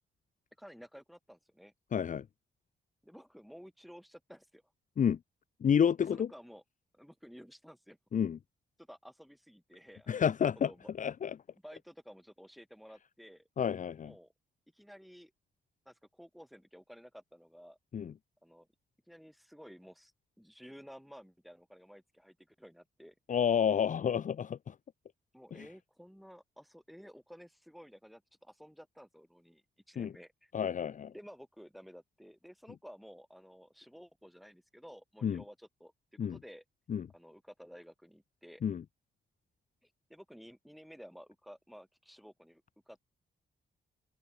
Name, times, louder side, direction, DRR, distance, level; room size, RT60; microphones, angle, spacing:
voice 1, 0.6-1.7 3.0-4.6 6.1-6.6 6.9-8.0 8.8-10.9 11.6-13.5 14.0-14.3 14.7-15.3 15.9-17.8 18.4-18.7 19.1-20.1 20.4-23.1 25.3-30.5 31.1-36.6 37.1-38.6 39.8-43.0, equal, ahead, 5.8 m, -54 dB
voice 2, 1.9-2.3 5.0-5.2 5.6-6.3 8.1-8.4 10.1-11.4 13.6-14.1 17.9-18.1 23.3-24.8 25.5-25.7 30.0-30.1 30.5-31.1 35.2-35.4 36.2-36.4 36.9-37.1 38.6-38.8, left 8 dB, 45° left, 0.8 m, -30 dB
wide cardioid pair, 135°, 18 cm